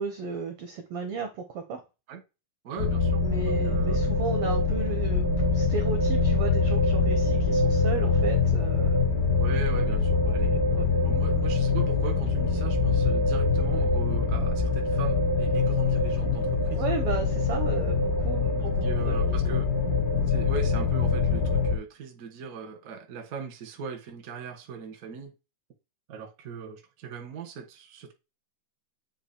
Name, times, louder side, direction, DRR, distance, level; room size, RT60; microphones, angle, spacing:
voice 1, 0.0-1.8 3.2-9.0 10.7-10.9 16.8-19.5, right 4 dB, 80° right, 1.3 m, -34 dB
voice 2, 2.6-4.0 9.4-10.6 11.0-16.8 18.5-19.7 20.3-25.3 26.1-28.1, right 5 dB, 55° right, 1.0 m, -39 dB
sound 1, 2.8-21.7, left 4 dB, 45° left, 1.2 m, -24 dB
8.6 x 3.0 x 4.3 m
omnidirectional pair, 3.8 m